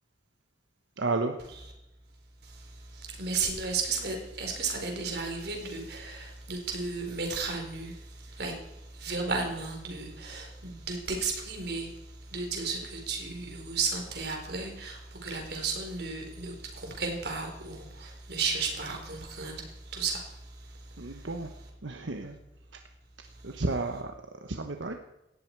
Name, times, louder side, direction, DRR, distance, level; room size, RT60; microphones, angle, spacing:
voice 1, 1.0-1.4 21.0-21.5 21.8-22.4 23.4-24.9, right 3 dB, 85° right, 5 dB, 1.2 m, -32 dB
voice 2, 2.9-8.6 9.0-11.9 12.3-20.3, right 4 dB, 60° right, 2 dB, 4.2 m, -34 dB
18.0 x 14.0 x 4.7 m, 0.88 s
head